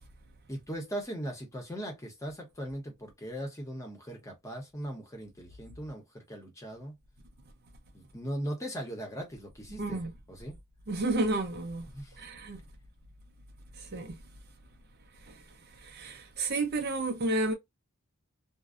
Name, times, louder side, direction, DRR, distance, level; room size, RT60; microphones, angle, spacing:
voice 1, 0.5-6.9 7.9-10.0 10.3-10.6 11.9-12.2, equal, 15° left, 0.8 m, -39 dB
voice 2, 9.8-10.1 10.9-11.9 12.2-12.6 13.8-14.2 15.3-15.4 15.8-17.5, right 2 dB, 45° right, 0.5 m, -31 dB
2.5 x 2.0 x 2.4 m
head